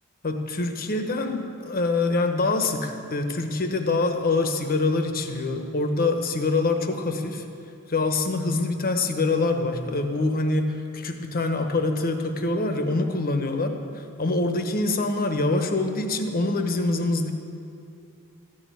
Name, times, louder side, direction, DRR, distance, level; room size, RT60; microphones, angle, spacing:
voice 1, 0.2-7.4 7.9-13.7 14.2-17.3, left 3 dB, 40° left, 6 dB, 1.0 m, -25 dB
14.0 x 6.5 x 9.4 m, 2.6 s
head